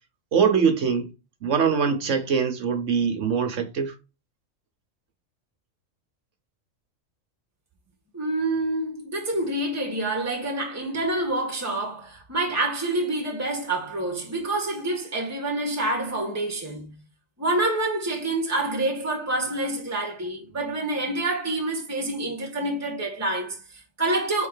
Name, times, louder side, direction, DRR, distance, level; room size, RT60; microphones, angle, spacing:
voice 1, 0.3-1.1 1.4-3.9, right 6 dB, 65° right, 1.3 m, -23 dB
voice 2, 8.1-16.9 17.4-24.5, right 2 dB, 10° right, 1.7 m, -27 dB
4.5 x 4.2 x 5.6 m
omnidirectional pair, 1.4 m